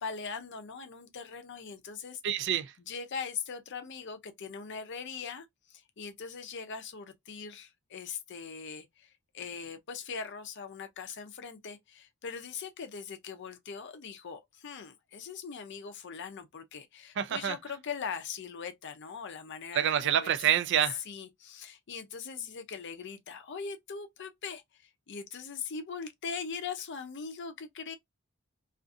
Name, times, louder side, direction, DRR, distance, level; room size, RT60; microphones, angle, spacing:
voice 1, 0.0-2.2 2.8-20.4 21.0-28.0, left 6 dB, 55° left, 0.5 m, -41 dB
voice 2, 2.2-2.7 17.2-17.6 19.8-21.0, right 10 dB, 55° right, 0.3 m, -27 dB
2.6 x 2.5 x 2.4 m
head